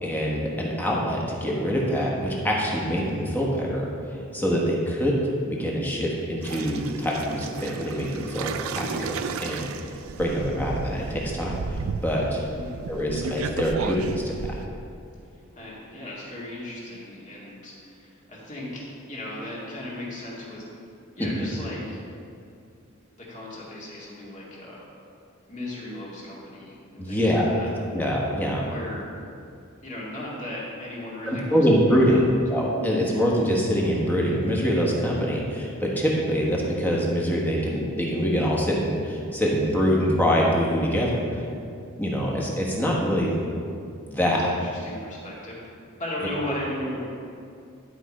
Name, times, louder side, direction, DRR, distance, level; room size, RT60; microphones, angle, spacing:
voice 1, 0.0-3.9 4.3-5.1 5.5-9.7 10.2-12.4 12.9-14.5 21.2-21.4 27.0-27.5 27.9-28.6 31.3-32.2 32.5-41.4 42.0-43.4 44.1-44.4, equal, 10° left, -3 dB, 1.2 m, -24 dB
sound 1, 6.4-14.7, right 5 dB, 75° right, 0.4 m, -34 dB
voice 2, 12.5-12.9 15.5-20.6 21.2-22.0 23.2-24.8 25.5-27.7 28.7-29.1 29.8-32.4 44.2-45.6 46.0-47.1, left 1 dB, 35° left, -5 dB, 2.0 m, -36 dB
11.0 x 4.9 x 4.2 m, 2.4 s
head